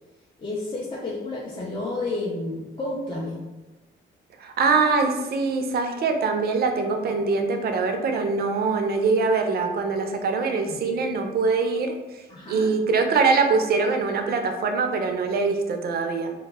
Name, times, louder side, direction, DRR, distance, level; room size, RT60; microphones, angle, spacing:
voice 1, 0.4-3.4 12.3-12.8, left 2 dB, 25° left, -3 dB, 0.4 m, -31 dB
voice 2, 4.4-11.9 12.5-16.3, right 4 dB, 50° right, 5 dB, 0.4 m, -23 dB
2.1 x 2.0 x 3.3 m, 1.1 s
cardioid pair, 90°, 20 cm